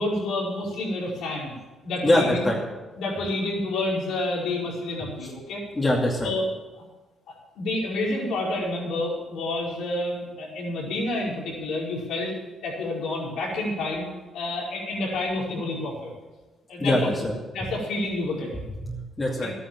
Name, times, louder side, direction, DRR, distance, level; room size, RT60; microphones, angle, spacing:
voice 1, 0.0-1.5 1.8-2.5 3.0-5.6 6.2-6.4 7.6-12.3 12.6-14.1 14.3-16.1 16.7-17.1 17.5-18.7 19.4-19.5, left 2 dB, 80° left, -3 dB, 5.0 m, -29 dB
voice 2, 2.0-2.6 5.7-6.3 16.8-17.3 18.8-19.5, left 1 dB, 20° left, -4 dB, 2.6 m, -23 dB
12.5 x 9.8 x 7.4 m, 1.2 s
cardioid pair, 90°, 0 cm